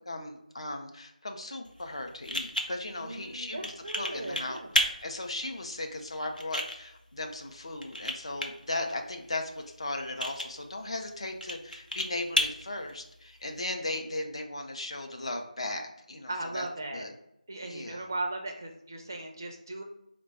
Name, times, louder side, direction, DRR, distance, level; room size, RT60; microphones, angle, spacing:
voice 1, 0.0-16.7 16.9-17.1 17.6-18.1, left 2 dB, 40° left, 4 dB, 0.5 m, -37 dB
sound 1, 1.6-13.7, equal, 85° left, 0.7 m, -35 dB
voice 2, 3.0-4.7 16.3-17.0 17.5-19.8, right 2 dB, 25° right, 2 dB, 0.4 m, -37 dB
4.1 x 2.2 x 4.0 m, 0.80 s
figure-of-eight pair, 165°, 4 cm